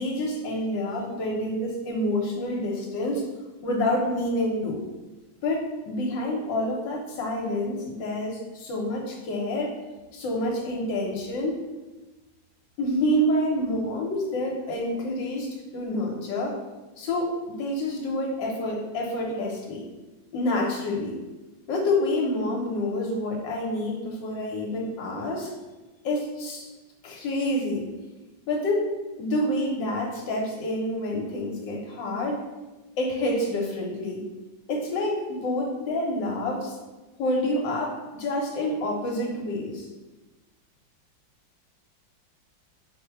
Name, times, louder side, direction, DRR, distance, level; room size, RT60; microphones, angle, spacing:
voice 1, 0.0-3.2 3.6-4.8 5.4-9.7 10.1-11.6 12.8-16.6 17.0-19.9 20.3-21.2 21.7-25.5 26.0-26.7 27.0-27.9 28.5-28.9 29.2-32.4 33.0-34.2 34.7-36.8 37.2-39.9, left 1 dB, 75° left, -1 dB, 1.4 m, -28 dB
4.9 x 2.1 x 4.4 m, 1.1 s
omnidirectional pair, 2.1 m